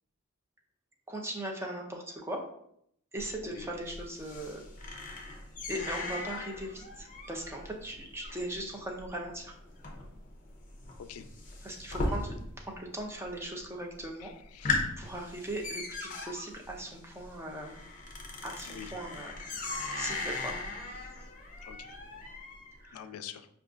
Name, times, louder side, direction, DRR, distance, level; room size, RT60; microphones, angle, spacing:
voice 1, 1.1-2.4 3.1-5.4 5.7-9.6 11.6-14.3 15.0-17.8 18.4-20.6 22.8-23.0, right 1 dB, 10° right, 0 dB, 0.5 m, -39 dB
sound 1, 3.2-12.7 13.0-13.6 14.0-14.1 14.4-22.7, left 2 dB, 35° left, 0.6 m, -38 dB
voice 2, 14.2-14.8 18.6-18.9 21.6-22.0 22.9-23.5, left 9 dB, 85° left, 9 dB, 0.3 m, -45 dB
4.8 x 2.4 x 2.4 m, 0.71 s
head